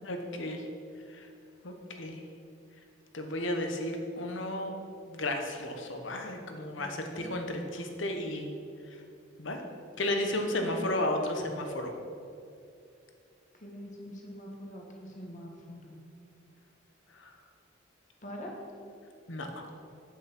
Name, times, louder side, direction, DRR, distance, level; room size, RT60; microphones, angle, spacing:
voice 1, 0.0-0.6 1.1-1.3 1.6-2.2 3.1-4.7 5.1-8.5 9.4-9.6 10.0-11.9 17.1-17.3 19.3-19.7, left 1 dB, 75° left, 4 dB, 1.2 m, -33 dB
voice 2, 6.8-7.3 10.6-10.9 13.6-15.9 18.2-18.5, equal, 40° left, 0 dB, 1.6 m, -44 dB
8.6 x 7.2 x 6.0 m, 2.5 s
head